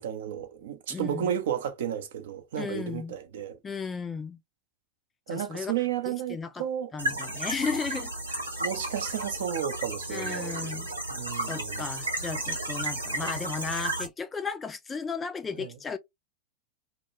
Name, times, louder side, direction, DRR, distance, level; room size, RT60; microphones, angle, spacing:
voice 1, 0.0-3.6 5.3-6.9 8.6-11.8 15.6-15.7, right 9 dB, 55° right, 0.5 m, -33 dB
voice 2, 0.9-1.3 2.6-3.1 3.6-4.4 5.3-5.7 6.1-6.6 6.9-8.1 10.1-10.9 11.4-16.0, left 5 dB, 15° left, 0.4 m, -35 dB
sound 1, 7.0-14.1, right 1 dB, 85° right, 0.8 m, -33 dB
2.2 x 2.1 x 2.7 m
figure-of-eight pair, 90°, 0 cm